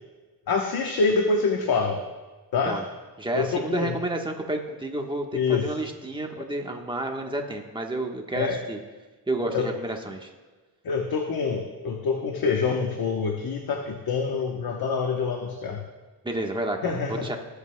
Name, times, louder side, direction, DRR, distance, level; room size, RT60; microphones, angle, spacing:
voice 1, 0.5-2.0 2.5-2.8 3.3-3.9 5.3-5.7 6.4-6.5 8.3-8.6 9.5-9.7 10.8-15.8 16.8-17.3, left 4 dB, 65° left, 2 dB, 1.1 m, -26 dB
voice 2, 3.2-8.8 9.3-10.3 16.2-17.4, right 2 dB, 10° right, 2 dB, 1.2 m, -30 dB
18.5 x 8.1 x 2.2 m, 1.3 s
cardioid pair, 100°, 38 cm